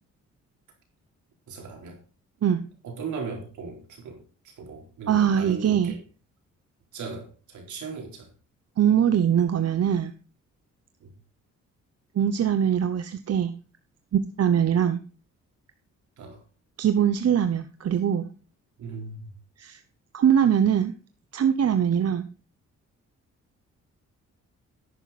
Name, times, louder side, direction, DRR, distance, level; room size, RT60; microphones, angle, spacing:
voice 1, 1.5-2.0 2.8-6.0 6.9-8.3 11.0-11.1 16.2-16.4 18.8-19.3, right 4 dB, 75° right, 4.2 m, -38 dB
voice 2, 5.1-5.9 8.8-10.1 12.1-13.5 14.1-15.0 16.8-18.3 19.6-19.8 20.1-20.9 21.3-22.3, right 9 dB, 55° right, 0.9 m, -22 dB
11.0 x 9.1 x 4.2 m
cardioid pair, 70°, 30 cm